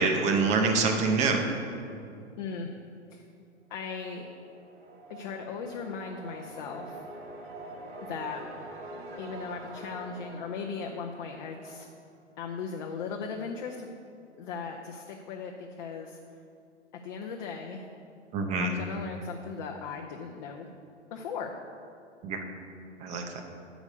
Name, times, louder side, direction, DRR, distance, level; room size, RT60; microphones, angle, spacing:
voice 1, 0.0-1.4 18.3-18.7 22.2-22.4 23.0-23.4, right 4 dB, 20° right, 4 dB, 0.7 m, -26 dB
voice 2, 2.4-2.7 3.1-3.2 3.7-4.3 5.1-7.0 8.1-8.4 9.2-11.9 12.4-13.9 14.4-16.2 17.0-17.9 18.6-20.7 21.1-21.5, left 5 dB, 40° left, 1 dB, 0.7 m, -37 dB
sound 1, 4.3-11.9, right 2 dB, 45° right, 1.9 m, -45 dB
8.1 x 5.0 x 6.8 m, 2.5 s
figure-of-eight pair, 110°, 35 cm